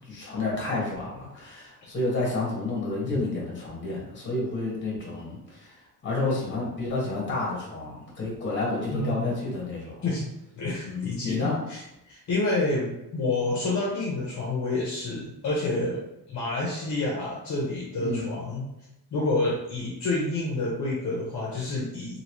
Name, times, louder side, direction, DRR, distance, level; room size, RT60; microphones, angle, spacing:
voice 1, 0.0-10.0 10.8-11.6 18.0-18.3, left 2 dB, 30° left, -4 dB, 1.2 m, -30 dB
voice 2, 8.9-9.4 10.0-10.2 10.5-16.0 16.3-18.7 19.1-22.2, left 2 dB, 50° left, -5 dB, 0.9 m, -28 dB
2.9 x 2.8 x 3.0 m, 0.90 s
cardioid pair, 155°, 38 cm